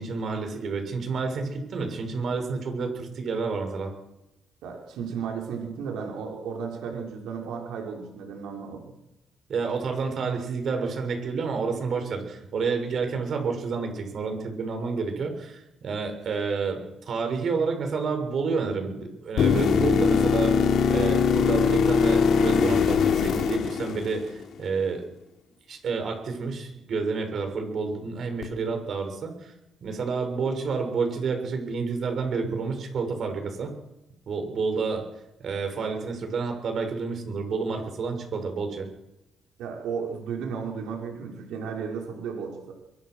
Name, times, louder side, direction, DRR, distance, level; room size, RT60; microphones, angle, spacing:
voice 1, 0.0-3.9 9.5-25.0 25.7-29.5 29.8-33.7 34.3-35.0 35.4-38.9, right 4 dB, 60° right, 5 dB, 6.8 m, -29 dB
voice 2, 4.6-8.9 39.6-42.7, right 6 dB, 85° right, 0 dB, 5.3 m, -34 dB
sound 1, 19.4-24.4 28.4-28.5, left 6 dB, 70° left, 3.2 m, -22 dB
24.0 x 23.0 x 6.5 m, 0.92 s
cardioid pair, 90°, 0 cm